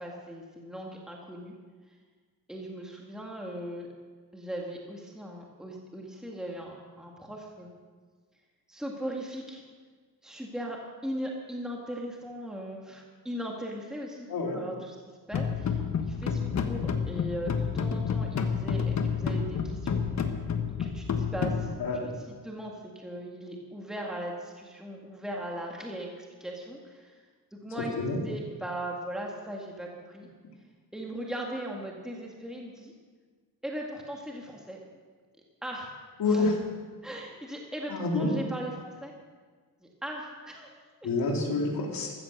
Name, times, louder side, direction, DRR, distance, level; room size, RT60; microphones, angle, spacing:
voice 1, 0.0-1.5 2.5-3.9 4.3-7.7 8.7-9.6 10.2-20.0 20.7-21.7 22.3-27.2 27.5-27.9 28.2-30.3 30.9-32.9 33.6-34.8 35.6-35.9 36.3-36.5 37.0-39.1 39.8-41.1, right 1 dB, ahead, -1 dB, 1.8 m, -39 dB
sound 1, 15.3-21.7, left 6 dB, 45° left, 1.4 m, -29 dB
voice 2, 36.2-36.5 37.9-38.3 41.0-42.1, left 3 dB, 65° left, 0 dB, 3.5 m, -27 dB
15.0 x 14.5 x 6.5 m, 1.5 s
wide cardioid pair, 170°, 38 cm